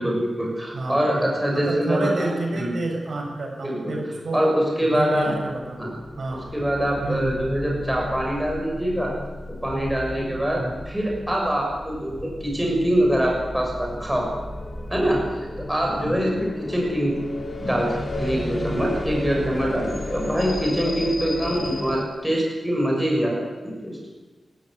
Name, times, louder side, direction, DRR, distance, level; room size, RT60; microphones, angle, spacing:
voice 1, 0.0-2.3 2.5-2.7 3.6-4.0 4.3-5.3 5.8-5.9 6.3-9.1 9.6-14.3 14.9-15.2 15.7-16.3 16.7-17.2 17.6-24.0, equal, 5° right, -1 dB, 6.5 m, -24 dB
voice 2, 0.7-4.4 4.9-6.4 7.0-7.3 10.5-10.7 16.0-16.2, right 2 dB, 55° right, 1 dB, 7.6 m, -29 dB
sound 1, 5.4-22.0, left 1 dB, 30° left, 3.9 m, -34 dB
30.0 x 14.5 x 9.8 m, 1.3 s
wide cardioid pair, 165°, 0 cm